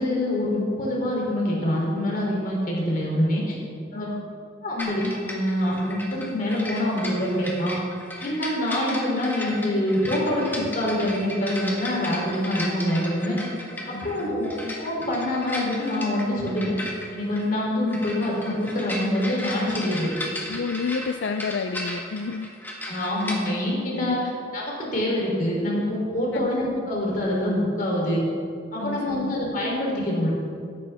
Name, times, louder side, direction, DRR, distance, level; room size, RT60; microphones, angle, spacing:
voice 1, 0.0-3.6 3.9-4.1 4.6-7.7 8.2-13.4 13.9-16.7 17.1-20.1 22.9-24.2 24.5-28.2 28.7-30.3, left 1 dB, 45° left, -3 dB, 3.4 m, -25 dB
voice 2, 3.9-4.3 13.9-14.4 20.5-22.5 24.0-24.2 26.3-26.5 28.8-29.3, left 5 dB, 75° left, 7 dB, 0.4 m, -30 dB
sound 1, 4.8-23.5, left 1 dB, 10° left, 1.5 m, -36 dB
15.0 x 11.0 x 3.6 m, 2.3 s
head